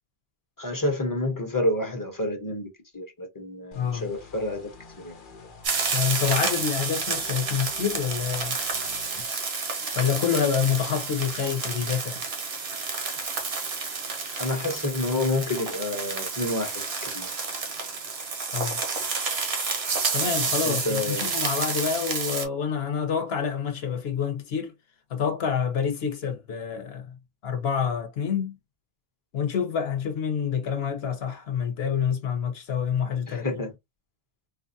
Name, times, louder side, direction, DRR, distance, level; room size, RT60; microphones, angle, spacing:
voice 1, 0.6-4.7 5.0-5.1 14.4-17.3 20.6-21.3 33.3-33.7, left 2 dB, 20° left, 0.9 m, -29 dB
voice 2, 3.7-4.1 5.9-8.6 9.9-12.2 18.5-18.8 20.1-24.7 25.1-28.6 29.3-33.5, left 7 dB, 80° left, 1.1 m, -27 dB
sound 1, 3.7-9.2, left 4 dB, 55° left, 0.9 m, -48 dB
sound 2, 5.6-22.5, right 4 dB, 75° right, 1.2 m, -30 dB
4.2 x 2.3 x 2.7 m
omnidirectional pair, 1.0 m